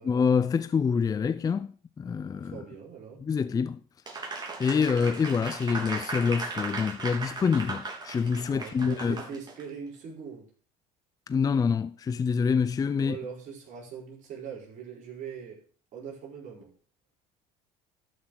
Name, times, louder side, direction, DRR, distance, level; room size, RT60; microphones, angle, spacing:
voice 1, 0.0-2.6 3.2-3.8 4.6-9.2 11.3-13.2, left 6 dB, 25° left, 0.5 m, -26 dB
voice 2, 2.5-3.2 8.5-10.5 12.9-15.6 15.9-16.7, right 6 dB, 55° right, 4.8 m, -41 dB
Applause, 4.1-9.6, right 3 dB, 25° right, 3.5 m, -37 dB
12.5 x 6.1 x 6.5 m
supercardioid pair, 95°, 15 cm